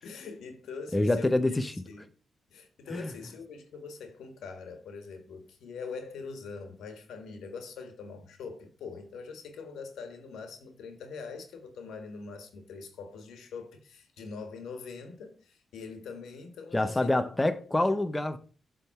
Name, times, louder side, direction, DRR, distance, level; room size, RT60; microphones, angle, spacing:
voice 1, 0.0-1.6 1.9-2.1 2.5-17.1, left 5 dB, 85° left, 1.4 m, -43 dB
voice 2, 0.9-1.7 2.9-3.1 16.7-18.4, left 2 dB, 15° left, 0.6 m, -26 dB
7.4 x 3.6 x 5.6 m
cardioid pair, 85°, 0 cm